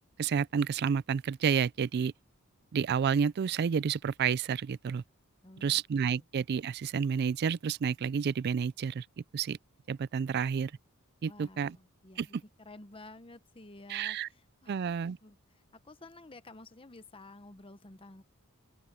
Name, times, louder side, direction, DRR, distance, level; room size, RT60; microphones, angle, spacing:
voice 1, 0.0-2.1 2.7-5.0 5.6-9.1 9.3-9.6 9.9-10.7 11.2-11.8 12.2-12.3 13.9-14.3 14.7-15.2, right 7 dB, 45° right, 0.3 m, -30 dB
voice 2, 5.4-5.8 6.1-6.2 11.2-14.8 15.2-18.2, left 2 dB, 25° left, 0.9 m, -52 dB
open air
head